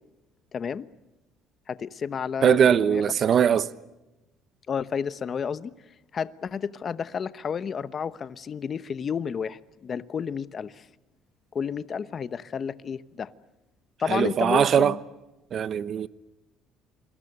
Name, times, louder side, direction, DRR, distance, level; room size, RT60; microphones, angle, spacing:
voice 1, 0.5-0.9 1.7-3.0 4.7-5.7 6.1-10.8 11.5-13.3 14.0-15.0, left 6 dB, 35° left, 1.0 m, -31 dB
voice 2, 2.4-3.7 14.1-15.0 15.5-16.1, right 8 dB, 45° right, 1.0 m, -21 dB
29.0 x 23.0 x 6.8 m
cardioid pair, 120°, 0 cm